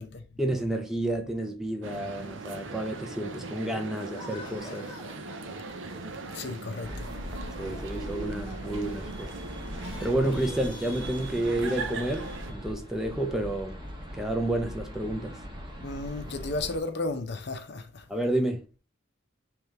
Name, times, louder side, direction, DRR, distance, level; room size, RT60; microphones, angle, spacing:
voice 1, 0.4-4.9 7.6-9.3 10.0-13.8 14.1-15.4 18.1-18.6, right 1 dB, ahead, 0.5 m, -30 dB
sound 1, 1.8-12.5, right 3 dB, 75° right, 0.6 m, -40 dB
sound 2, 4.0-9.4 9.7-12.2, left 2 dB, 20° left, 1.1 m, -49 dB
voice 2, 6.2-7.1 15.8-18.1, left 2 dB, 60° left, 0.6 m, -34 dB
sound 3, 6.8-16.8, equal, 25° right, 0.9 m, -40 dB
3.3 x 3.3 x 4.7 m
head